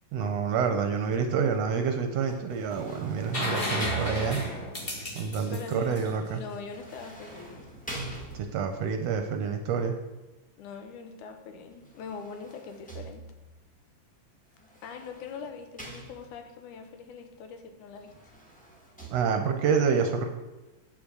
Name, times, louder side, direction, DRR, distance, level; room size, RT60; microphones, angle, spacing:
voice 1, 0.1-4.4 5.1-6.4 8.3-10.0 19.1-20.3, right 6 dB, 70° right, 6 dB, 1.7 m, -28 dB
sound 1, 2.3-4.7 6.6-8.8 11.7-13.6 14.6-16.6 17.9-19.1, right 3 dB, 10° left, 0.5 m, -43 dB
sound 2, 3.3-7.0 8.9-9.0, left 1 dB, 30° left, 1.0 m, -33 dB
voice 2, 5.5-7.7 10.6-13.2 14.8-18.1, left 5 dB, 80° left, 5 dB, 2.5 m, -42 dB
8.4 x 6.1 x 6.2 m, 1.1 s
omnidirectional pair, 3.4 m